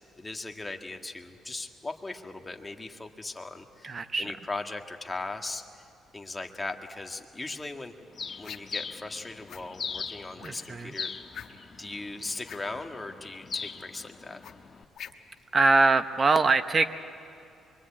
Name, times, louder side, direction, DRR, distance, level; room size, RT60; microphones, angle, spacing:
voice 1, 0.2-5.8 6.1-7.9 8.4-11.1 11.8-14.4, left 2 dB, 20° left, 4 dB, 1.9 m, -38 dB
voice 2, 3.8-4.3 10.4-10.9 15.5-16.9, right 3 dB, 35° right, 10 dB, 1.0 m, -23 dB
Bird, 8.2-14.8, left 5 dB, 40° left, 1.4 m, -40 dB
sound 1, 8.4-8.8 9.5-9.7 10.4-10.7 11.3-11.8 12.4-12.7 14.4-15.4, left 9 dB, 65° left, 1.3 m, -43 dB
24.5 x 23.5 x 8.7 m, 2.6 s
cardioid pair, 90°, 0 cm